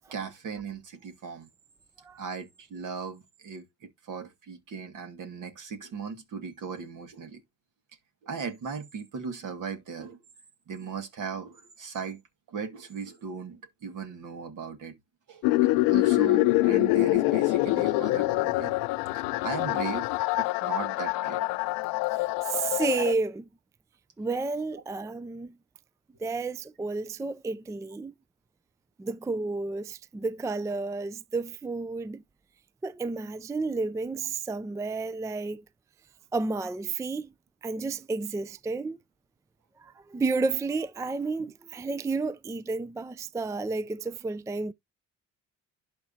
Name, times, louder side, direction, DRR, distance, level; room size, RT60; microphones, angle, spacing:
voice 1, 0.1-1.5 2.2-7.4 8.2-10.2 10.7-12.2 12.5-15.0 15.3-15.4 15.9-18.7 19.1-20.1 20.3-21.4, right 5 dB, 60° right, 1.9 m, -37 dB
sound 1, 15.4-23.1, left 19 dB, 80° left, 0.6 m, -25 dB
voice 2, 22.4-23.5 24.2-25.6 26.2-28.1 29.0-32.2 32.8-35.6 36.3-37.3 37.6-39.0 39.8-44.7, right 3 dB, 10° right, 0.4 m, -31 dB
11.5 x 4.6 x 2.7 m
supercardioid pair, 65°, 35 cm